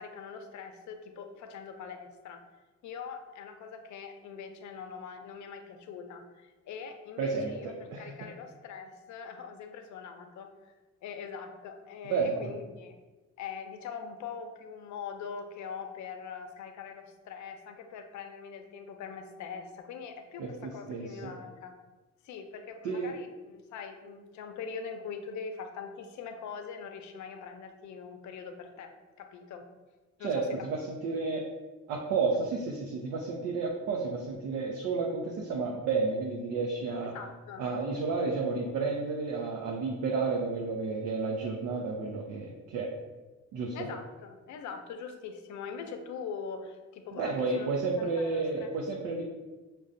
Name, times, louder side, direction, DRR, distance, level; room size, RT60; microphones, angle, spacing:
voice 1, 0.0-2.4 2.8-10.7 11.0-12.9 13.4-21.8 22.2-28.9 29.2-29.7 30.2-30.7 32.3-32.4 37.0-37.7 43.7-47.7 48.0-48.7, left 6 dB, 70° left, 6 dB, 0.5 m, -42 dB
voice 2, 7.2-8.3 12.0-12.5 20.4-21.3 22.8-23.1 30.2-31.4 31.9-37.1 37.6-42.9 43.5-43.8 47.1-49.2, right 4 dB, 85° right, -1 dB, 0.6 m, -31 dB
5.3 x 2.2 x 2.5 m, 1.2 s
cardioid pair, 90°, 30 cm